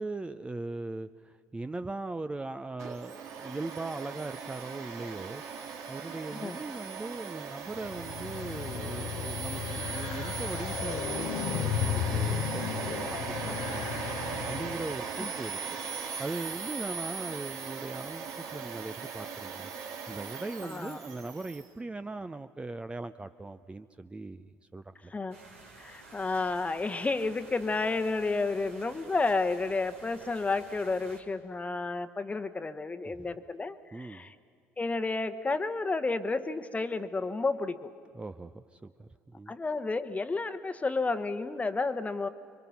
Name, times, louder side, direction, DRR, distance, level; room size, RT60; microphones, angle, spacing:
voice 1, 0.0-5.4 5.9-13.9 14.4-15.6 16.2-19.7 20.1-25.1 33.0-33.3 33.9-34.2 38.1-39.5, right 2 dB, 15° right, 10 dB, 0.6 m, -39 dB
Domestic sounds home sounds, 2.8-21.7, right 6 dB, 60° right, 1.9 m, -38 dB
sound 1, 7.7-15.1, left 9 dB, 65° left, 0.8 m, -34 dB
voice 2, 20.6-21.0 25.1-25.4 25.8-34.3 34.8-37.9 39.5-42.3, left 3 dB, 20° left, 10 dB, 1.1 m, -31 dB
sound 2, 25.3-31.2, right 3 dB, 90° right, 2.4 m, -52 dB
27.0 x 22.5 x 5.8 m, 2.3 s
hypercardioid pair, 60°, 7 cm